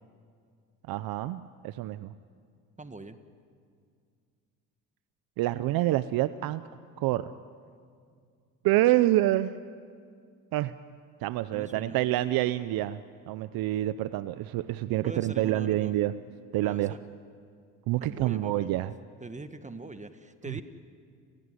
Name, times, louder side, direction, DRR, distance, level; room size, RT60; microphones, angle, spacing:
voice 1, 0.9-2.1 5.4-6.6 7.0-7.3 8.6-9.5 10.5-10.7 11.2-13.0 13.3-16.1 16.5-17.0 17.9-18.9, right 15 dB, 75° right, 14 dB, 0.8 m, -27 dB
voice 2, 2.8-3.2 11.5-12.0 15.0-15.9 16.6-17.0 18.0-18.7 19.2-20.6, right 2 dB, 20° right, 9 dB, 1.5 m, -42 dB
30.0 x 17.0 x 9.8 m, 2.2 s
supercardioid pair, 75°, 36 cm